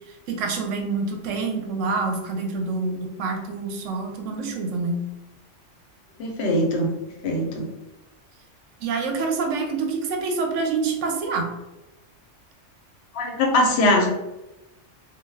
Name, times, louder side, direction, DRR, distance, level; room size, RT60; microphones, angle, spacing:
voice 1, 0.3-5.0 8.8-11.5, right 4 dB, 80° right, 3 dB, 0.9 m, -26 dB
voice 2, 6.2-6.9 7.2-7.7 13.1-14.1, left 1 dB, 65° left, 1 dB, 0.8 m, -21 dB
2.3 x 2.2 x 3.2 m, 0.97 s
omnidirectional pair, 1.2 m